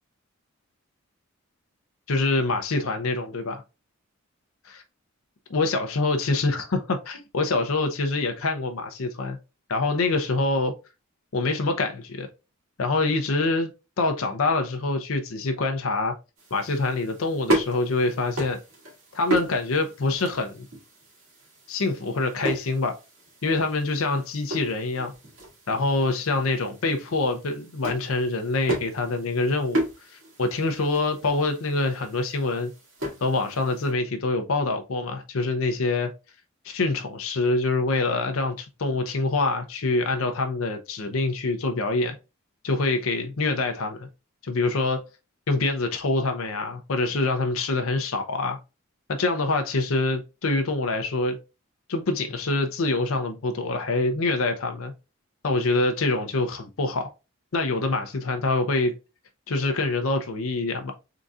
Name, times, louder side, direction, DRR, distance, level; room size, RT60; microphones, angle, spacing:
voice 1, 2.1-3.6 4.7-4.8 5.5-9.4 9.7-10.7 11.3-12.3 12.8-13.7 14.0-16.1 16.5-18.6 19.1-20.6 21.7-23.0 23.4-25.1 25.7-29.8 30.1-32.7 33.2-36.1 36.6-42.2 42.6-44.1 44.4-45.0 45.5-48.6 49.1-51.4 51.9-54.9 55.4-57.1 57.5-58.9 59.5-60.9, left 3 dB, 80° left, 0.6 m, -25 dB
sound 1, 16.4-33.9, right 1 dB, 70° right, 2.1 m, -34 dB
3.9 x 3.7 x 2.3 m
head